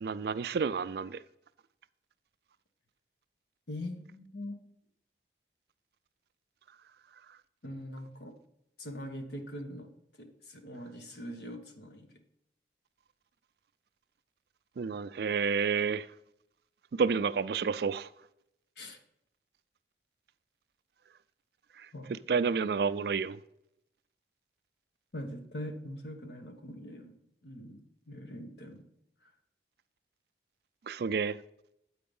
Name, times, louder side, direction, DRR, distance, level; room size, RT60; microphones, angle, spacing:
voice 1, 0.0-1.2 14.8-16.1 17.0-18.1 22.3-23.4 30.9-31.4, right 5 dB, 65° right, 0.4 m, -30 dB
voice 2, 3.7-4.6 7.6-8.3 8.8-9.9 10.2-12.1 18.8-19.0 21.9-22.1 25.1-27.8 28.1-28.9 29.2-29.3, left 1 dB, 75° left, 1.2 m, -42 dB
8.8 x 4.6 x 5.3 m
head